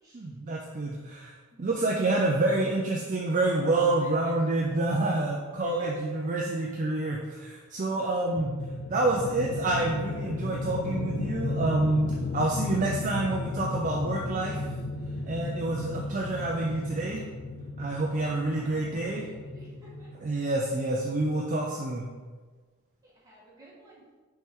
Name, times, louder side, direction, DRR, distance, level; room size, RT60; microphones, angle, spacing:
voice 1, 0.1-8.5 8.9-14.7 15.3-17.2 17.8-19.2 20.2-22.0, right 2 dB, 35° right, -1 dB, 0.5 m, -28 dB
sound 1, 8.4-20.6, left 2 dB, 45° left, 0.4 m, -34 dB
voice 2, 17.8-20.1 23.0-24.0, right 1 dB, 15° right, -7 dB, 1.7 m, -52 dB
5.9 x 4.4 x 3.7 m, 1.4 s
head